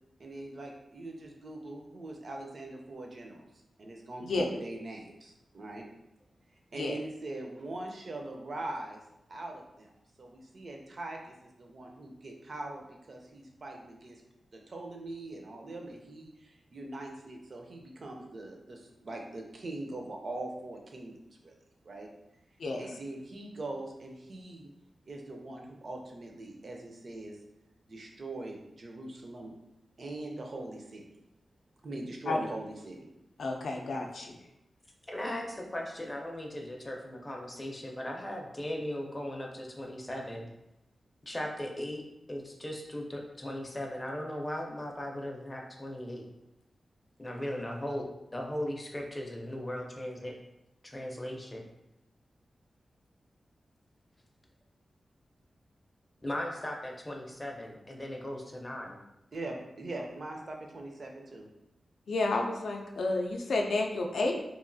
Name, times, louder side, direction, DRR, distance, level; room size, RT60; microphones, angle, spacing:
voice 1, 0.2-3.4 3.8-5.9 6.7-9.0 9.3-9.9 10.2-14.2 14.5-21.1 21.4-21.5 21.9-22.1 22.8-24.7 25.1-27.4 27.9-29.5 30.0-31.0 31.8-33.0 59.3-61.5, right 2 dB, 50° right, 1 dB, 0.5 m, -42 dB
voice 2, 33.4-34.4 62.1-64.3, left 2 dB, 85° left, 2 dB, 0.4 m, -30 dB
voice 3, 35.1-40.5 41.3-42.0 42.3-46.3 47.2-48.1 48.3-50.3 50.8-51.6 56.2-59.0, left 1 dB, 20° left, 0 dB, 0.4 m, -38 dB
2.9 x 2.4 x 2.6 m, 0.87 s
wide cardioid pair, 145°, 0 cm